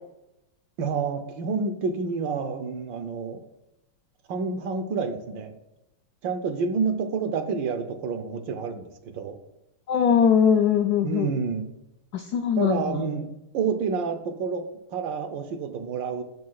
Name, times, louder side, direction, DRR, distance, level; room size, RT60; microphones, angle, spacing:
voice 1, 0.8-3.4 4.3-5.6 6.2-9.4 11.0-11.7 12.5-13.3 13.5-16.2, right 5 dB, 70° right, 8 dB, 1.4 m, -29 dB
voice 2, 9.9-11.3 12.1-13.0, left 7 dB, 90° left, 5 dB, 0.8 m, -21 dB
16.0 x 6.3 x 2.3 m, 0.90 s
omnidirectional pair, 2.3 m